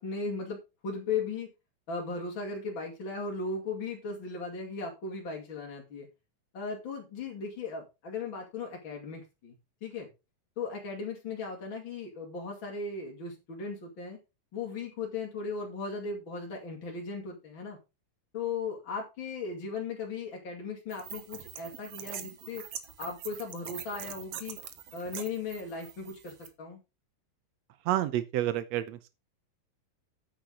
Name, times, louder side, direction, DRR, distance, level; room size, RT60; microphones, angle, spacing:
voice 1, 0.0-1.5 1.9-6.1 6.5-9.5 9.8-10.1 10.6-14.2 14.5-17.8 18.3-22.6 23.0-24.6 24.9-26.8, left 4 dB, 35° left, 2.8 m, -37 dB
sound 1, 20.9-26.5, right 9 dB, 60° right, 1.7 m, -43 dB
voice 2, 27.9-29.0, right 13 dB, 80° right, 1.5 m, -29 dB
9.3 x 9.0 x 3.7 m
omnidirectional pair, 4.0 m